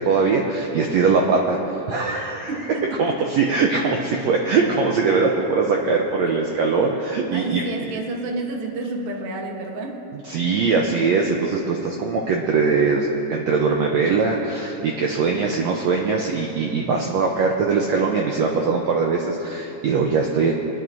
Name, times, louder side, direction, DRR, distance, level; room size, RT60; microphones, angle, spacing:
voice 1, 0.0-2.7 3.0-8.0 10.1-20.5, right 4 dB, 90° right, 0 dB, 1.5 m, -21 dB
voice 2, 2.5-3.0 7.3-10.0, right 2 dB, 60° right, 1 dB, 1.5 m, -29 dB
28.5 x 9.5 x 2.6 m, 3.0 s
omnidirectional pair, 4.0 m